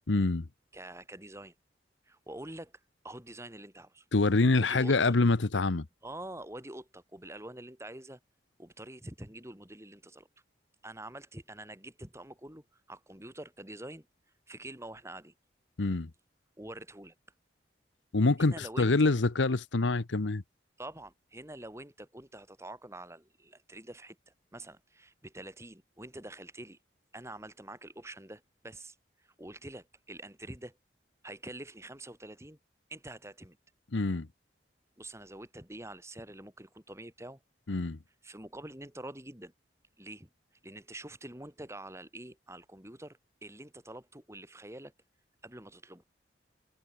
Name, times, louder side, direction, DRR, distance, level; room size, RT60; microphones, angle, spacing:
voice 1, 0.1-0.5 4.1-5.9 15.8-16.1 18.1-20.4 33.9-34.3 37.7-38.0, left 3 dB, 85° left, 0.9 m, -26 dB
voice 2, 0.7-1.5 2.0-2.7 3.0-4.0 4.6-5.2 6.0-8.2 8.6-10.3 10.8-14.1 14.5-15.3 16.6-17.1 18.4-19.1 20.8-26.8 27.1-30.8 31.2-32.6 32.9-33.6 35.0-37.4 38.2-39.5 40.0-40.3 40.6-44.9 45.4-46.0, right 1 dB, 15° right, 6.5 m, -46 dB
head